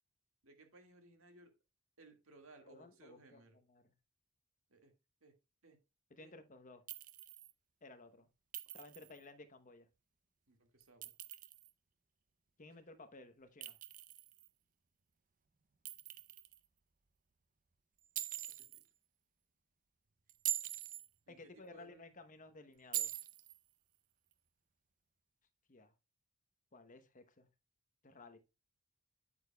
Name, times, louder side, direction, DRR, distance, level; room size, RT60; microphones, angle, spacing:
voice 1, 0.4-1.5 2.0-3.6 4.7-4.9 5.2-5.3 5.6-5.8 6.2-6.3 8.7-8.8 10.5-11.1 18.5-18.8 21.3-22.1, right 3 dB, 65° right, 2.0 m, -62 dB
voice 2, 2.6-3.9 6.1-6.8 7.8-8.3 8.7-9.9 12.6-13.8 21.3-23.1 25.7-25.9 26.7-27.5 28.0-28.4, left 2 dB, 35° left, 0.9 m, -56 dB
Chink clink, 6.9-7.5 8.5-9.2 10.8-11.7 13.6-14.5 15.9-16.6 18.2-18.8 20.3-21.1 22.9-23.6, right 12 dB, 35° right, 0.5 m, -43 dB
8.7 x 8.6 x 2.3 m
head